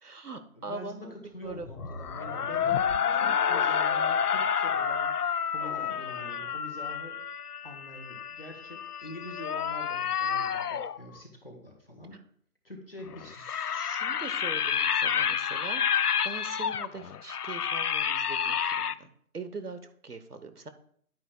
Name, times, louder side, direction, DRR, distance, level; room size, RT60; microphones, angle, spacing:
voice 1, 0.0-1.7 13.5-20.7, right 3 dB, 75° right, 10 dB, 1.2 m, -42 dB
voice 2, 0.5-7.2 7.6-12.2 12.6-13.4, left 1 dB, 40° left, 3 dB, 1.4 m, -45 dB
sound 1, 1.4-6.9, equal, 20° right, 1.5 m, -44 dB
Unholy animal and mosnters sounds from my ward, 1.7-11.0 13.1-18.9, left 8 dB, 75° left, 0.5 m, -29 dB
11.0 x 9.0 x 2.3 m, 0.62 s
figure-of-eight pair, 175°, 46 cm